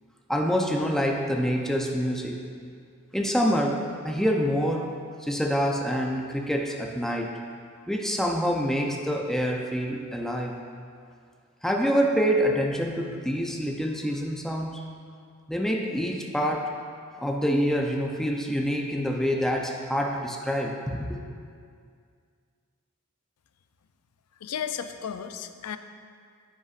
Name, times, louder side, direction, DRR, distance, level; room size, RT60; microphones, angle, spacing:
voice 1, 0.3-2.4 3.1-7.4 7.9-10.5 11.6-14.8 15.5-16.8 17.2-21.2, equal, ahead, 0 dB, 0.5 m, -26 dB
voice 2, 24.4-25.8, left 8 dB, 80° left, 9 dB, 0.5 m, -34 dB
15.5 x 5.5 x 2.5 m, 2.2 s
head